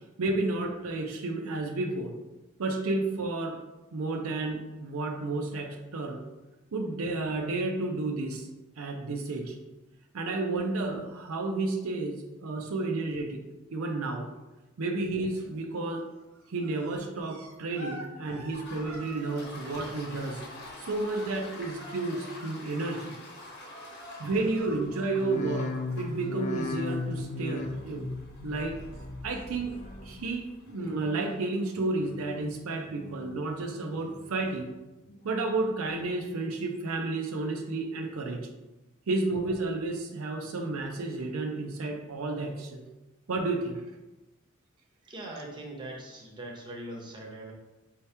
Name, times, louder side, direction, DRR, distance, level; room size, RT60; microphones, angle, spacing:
voice 1, 0.2-2.1 2.6-3.6 3.9-6.2 6.7-8.5 8.8-9.6 10.1-13.4 13.7-14.3 14.8-16.0 16.5-20.4 20.8-23.2 24.2-28.1 28.4-28.8 29.2-29.8 30.0-34.7 35.2-38.5 39.1-42.9 43.3-43.8, right 2 dB, 75° right, 3 dB, 0.5 m, -31 dB
sound 1, 15.3-15.8 16.0-28.3 28.6-30.7 31.0-31.7 32.0-33.8 34.5-34.6, right 1 dB, 90° right, 0.9 m, -50 dB
Toilet flush, 18.4-31.8, left 2 dB, 55° left, 1.0 m, -48 dB
sound 2, 25.0-30.4 30.7-31.3 31.8-32.4 32.9-33.5 34.0-34.6 35.1-35.7 36.2-36.3, left 2 dB, 35° left, 0.3 m, -38 dB
voice 2, 45.1-47.5, right 1 dB, 20° right, -2 dB, 0.8 m, -41 dB
4.5 x 2.9 x 3.3 m, 1.0 s
head